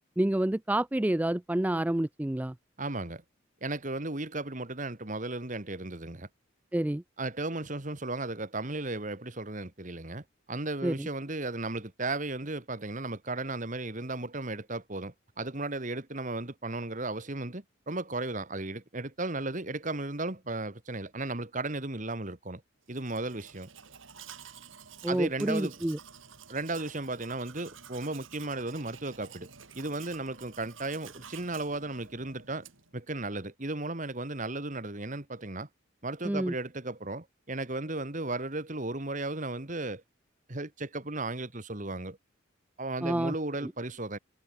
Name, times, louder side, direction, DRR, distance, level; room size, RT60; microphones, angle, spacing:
voice 1, 0.2-2.5 6.7-7.0 10.8-11.1 25.0-26.0 36.2-36.5 43.0-43.3 43.6-43.7, right 1 dB, 10° right, 0.3 m, -28 dB
voice 2, 2.8-3.2 3.6-6.3 7.2-22.6 22.9-23.7 25.1-25.8 26.5-29.5 29.7-32.7 32.9-35.7 36.0-40.0 40.5-42.2 42.8-44.2, right 2 dB, 40° right, 1.9 m, -35 dB
Domestic sounds home sounds, 22.9-33.0, right 7 dB, 80° right, 3.5 m, -50 dB
head